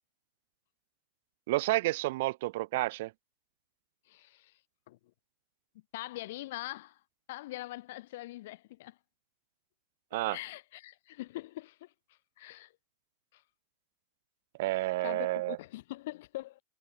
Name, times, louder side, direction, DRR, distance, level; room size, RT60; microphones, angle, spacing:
voice 1, 1.5-3.1 10.1-10.4 14.6-15.6, right 19 dB, 65° right, 0.4 m, -30 dB
voice 2, 4.1-4.5 4.9-5.0 5.9-7.0 7.3-9.0 10.3-11.9 12.4-12.7 13.3-13.4 15.0-16.6, left 17 dB, 70° left, 2.4 m, -43 dB
hypercardioid pair, 115°, 0 cm